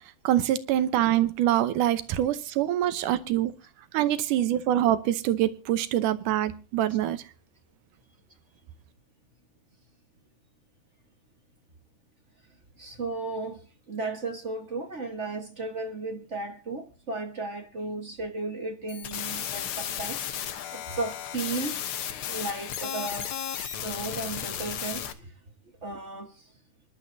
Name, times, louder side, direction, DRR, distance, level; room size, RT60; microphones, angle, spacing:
voice 1, 0.2-3.5 3.9-7.2, right 12 dB, 80° right, 2.4 m, -25 dB
voice 2, 12.8-13.6 13.9-20.5 20.7-21.8 22.3-25.3 25.8-26.3, right 3 dB, 45° right, 0.9 m, -35 dB
sound 1, 18.9-25.1, left 9 dB, 65° left, 1.4 m, -34 dB
25.5 x 11.5 x 2.7 m
omnidirectional pair, 3.6 m